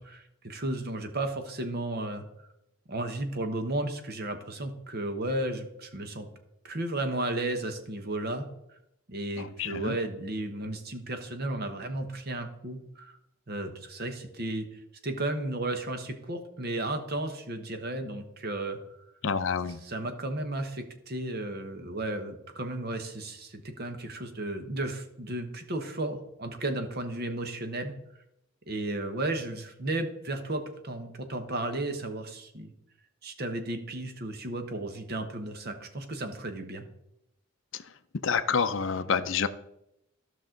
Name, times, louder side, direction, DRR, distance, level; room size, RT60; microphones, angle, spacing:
voice 1, 0.0-2.2 2.9-6.3 6.6-8.5 9.1-13.2 13.5-14.7 15.0-18.8 19.7-28.0 28.7-32.7 33.2-36.8, right 2 dB, 45° right, 7 dB, 1.1 m, -34 dB
voice 2, 9.4-9.9 19.2-19.8 38.2-39.5, left 6 dB, 60° left, 11 dB, 0.6 m, -28 dB
13.0 x 6.1 x 3.8 m, 0.81 s
head